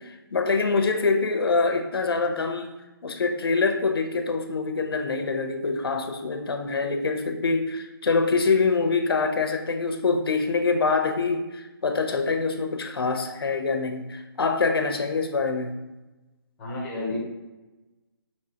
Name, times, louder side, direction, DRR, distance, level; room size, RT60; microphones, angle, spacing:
voice 1, 0.0-2.8 3.0-15.8, left 4 dB, 80° left, 6 dB, 0.6 m, -25 dB
voice 2, 16.6-17.2, left 2 dB, 5° left, -5 dB, 0.5 m, -31 dB
5.4 x 2.9 x 2.8 m, 1.1 s
hypercardioid pair, 170°, 12 cm